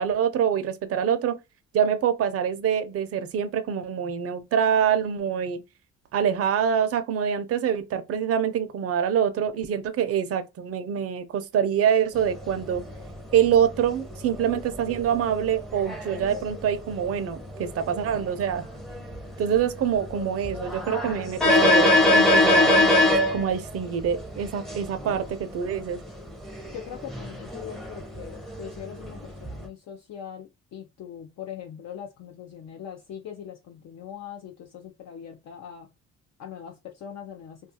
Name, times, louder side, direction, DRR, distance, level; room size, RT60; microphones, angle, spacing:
voice 1, 0.0-1.4 1.7-5.6 6.1-12.8 13.3-18.6 19.4-22.9 23.3-26.0, right 8 dB, 50° right, 0.5 m, -25 dB
sound 1, 12.1-29.7, left 2 dB, ahead, 0.6 m, -26 dB
voice 2, 26.7-35.9 36.4-36.7 37.0-37.6, left 9 dB, 60° left, 0.5 m, -41 dB
2.3 x 2.3 x 2.7 m
cardioid pair, 90°, 30 cm